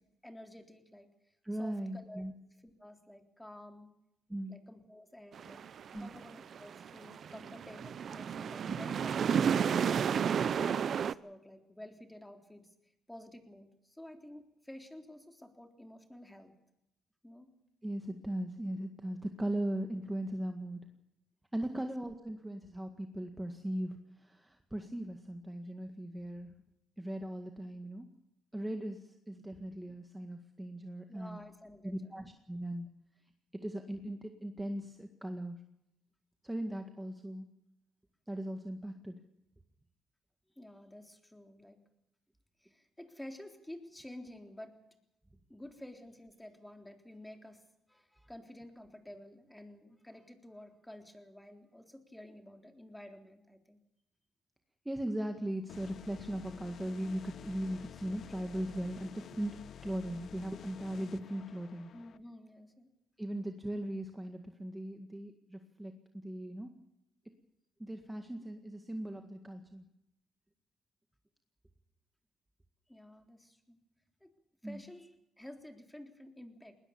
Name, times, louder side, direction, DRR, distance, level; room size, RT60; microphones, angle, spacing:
voice 1, 0.2-1.1 1.6-2.2 2.6-3.9 4.5-5.6 6.0-10.0 10.4-12.6 13.1-16.6 17.2-17.5 21.7-21.9 31.1-32.2 40.6-41.8 42.6-44.8 45.5-47.6 47.9-53.8 61.9-62.9 72.9-73.8 74.2-74.3 74.6-76.8, left 1 dB, 5° left, 5 dB, 3.6 m, -51 dB
voice 2, 1.4-2.3 4.3-4.5 5.9-6.1 8.7-8.8 17.8-20.8 21.5-26.5 27.0-28.1 28.5-31.4 31.8-32.9 33.5-35.6 36.4-37.4 38.3-39.1 54.9-61.9 63.2-65.9 66.2-66.7 67.8-69.8 74.6-74.8, right 1 dB, 10° right, 5 dB, 1.9 m, -39 dB
sound 1, 5.3-11.1, right 7 dB, 55° right, 0.7 m, -32 dB
sound 2, 55.7-62.2, left 9 dB, 60° left, 0.7 m, -51 dB
20.5 x 20.0 x 7.1 m, 0.85 s
cardioid pair, 90°, 0 cm